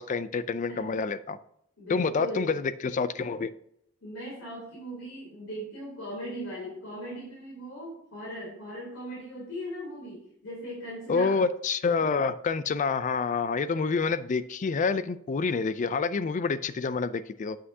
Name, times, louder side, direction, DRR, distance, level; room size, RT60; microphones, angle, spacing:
voice 1, 0.0-1.4 1.9-3.5 11.1-17.6, left 4 dB, 40° left, 15 dB, 0.4 m, -28 dB
voice 2, 0.7-1.1 1.8-2.6 4.0-11.4, equal, 75° left, -6 dB, 3.3 m, -39 dB
8.4 x 7.4 x 2.7 m, 0.72 s
head